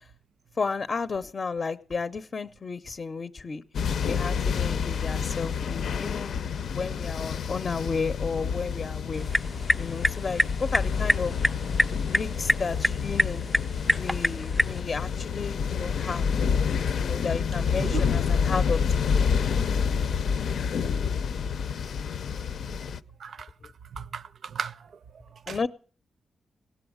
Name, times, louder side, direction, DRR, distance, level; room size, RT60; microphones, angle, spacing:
voice 1, 0.6-3.6 4.1-6.4 6.8-9.3 9.8-11.4 12.1-13.4 13.9-16.2 16.9-18.8 25.5-25.7, left 4 dB, 40° left, 0.6 m, -32 dB
sound 1, 3.7-23.0, left 6 dB, 80° left, 0.6 m, -28 dB
sound 2, 9.1-14.8, equal, ahead, 0.6 m, -27 dB
voice 2, 17.8-18.1 19.6-19.7 20.7-21.0 23.2-23.5 23.9-24.9 25.5-25.6, right 7 dB, 70° right, 0.6 m, -36 dB
17.0 x 7.1 x 9.4 m
cardioid pair, 95°, 0 cm